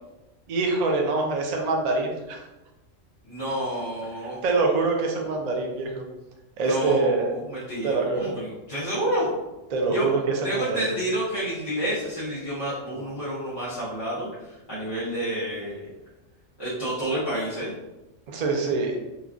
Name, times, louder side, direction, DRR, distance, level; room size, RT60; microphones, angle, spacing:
voice 1, 0.5-2.4 4.4-6.0 6.6-7.3 7.8-8.3 9.7-10.2 10.5-10.9 18.3-19.0, right 3 dB, 85° right, 1 dB, 0.3 m, -25 dB
voice 2, 3.2-4.4 6.6-9.3 9.9-10.1 10.4-15.9 16.6-17.7, right 1 dB, 25° left, -12 dB, 0.7 m, -29 dB
3.1 x 2.3 x 2.4 m, 1.0 s
omnidirectional pair, 1.3 m